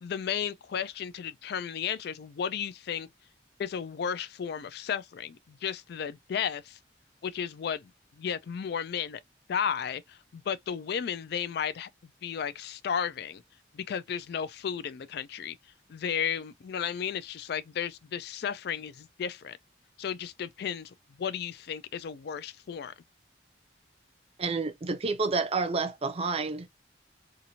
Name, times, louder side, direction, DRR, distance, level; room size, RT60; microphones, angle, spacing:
voice 1, 0.0-3.1 3.6-6.8 7.2-7.9 8.2-9.2 9.5-11.9 12.2-13.4 13.7-15.6 15.9-19.6 20.0-22.9, left 8 dB, 60° left, 0.3 m, -34 dB
voice 2, 24.4-26.7, right 4 dB, 35° right, 0.4 m, -29 dB
2.8 x 2.5 x 2.7 m
head